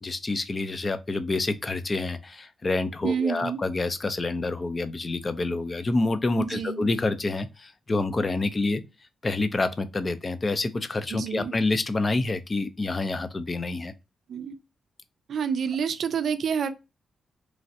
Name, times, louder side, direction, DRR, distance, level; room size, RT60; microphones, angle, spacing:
voice 1, 0.0-8.8 9.2-13.9, left 2 dB, 35° left, 0.5 m, -27 dB
voice 2, 3.0-3.6 6.4-6.9 11.1-11.5 14.3-14.5 15.3-16.7, right 7 dB, 70° right, 0.4 m, -28 dB
3.1 x 2.4 x 2.6 m
cardioid pair, 80°, 0 cm